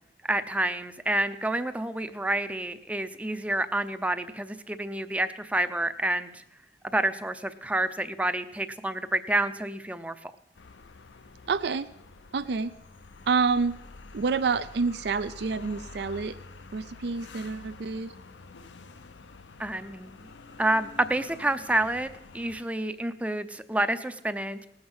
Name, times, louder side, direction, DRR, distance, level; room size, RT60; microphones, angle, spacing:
voice 1, 0.3-6.4 6.9-10.3 19.6-20.3 20.6-24.7, right 1 dB, 10° right, 10 dB, 0.5 m, -29 dB
sound 1, 10.6-22.6, left 3 dB, 90° left, 0.7 m, -48 dB
voice 2, 11.5-11.9 12.3-12.7 13.3-13.7 14.1-16.4 16.7-18.1, right 4 dB, 65° right, 13 dB, 0.4 m, -28 dB
18.5 x 7.9 x 5.5 m, 0.82 s
head